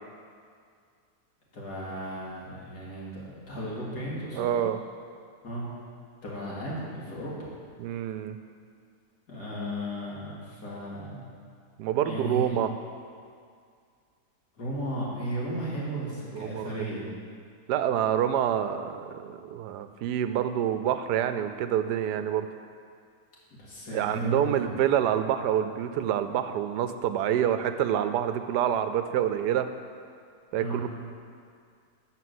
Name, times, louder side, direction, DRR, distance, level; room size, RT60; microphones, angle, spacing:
voice 1, 1.5-4.5 5.4-5.7 6.2-7.5 9.3-11.2 12.0-12.5 14.6-17.0 23.5-24.6 30.6-30.8, right 1 dB, 75° left, -6 dB, 2.9 m, -35 dB
voice 2, 4.4-4.8 7.8-8.4 11.8-12.7 16.3-16.8 17.7-22.5 23.9-29.7 30.5-30.9, right 10 dB, 80° right, 10 dB, 1.2 m, -27 dB
11.5 x 5.0 x 7.8 m, 2.2 s
omnidirectional pair, 1.8 m